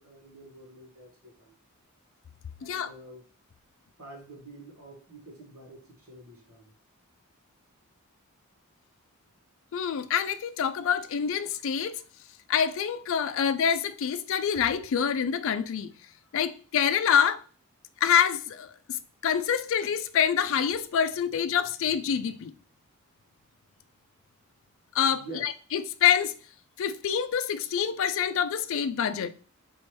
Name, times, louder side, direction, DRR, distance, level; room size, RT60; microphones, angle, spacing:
voice 1, 0.0-1.6 2.6-3.3 4.0-6.7 25.1-25.5, right 2 dB, 75° right, 1.5 m, -47 dB
voice 2, 9.7-12.0 12.5-15.9 16.3-17.4 18.0-18.7 19.2-22.5 25.0-26.3 26.8-29.3, left 8 dB, 60° left, 0.4 m, -26 dB
3.2 x 3.1 x 4.4 m
head